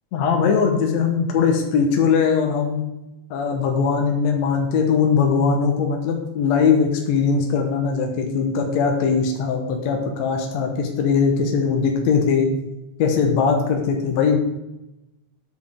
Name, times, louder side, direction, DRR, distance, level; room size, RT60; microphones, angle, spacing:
voice 1, 0.1-2.8 3.3-12.5 13.0-14.4, left 5 dB, 70° left, 2 dB, 2.1 m, -20 dB
9.5 x 7.4 x 3.5 m, 0.94 s
omnidirectional pair, 3.5 m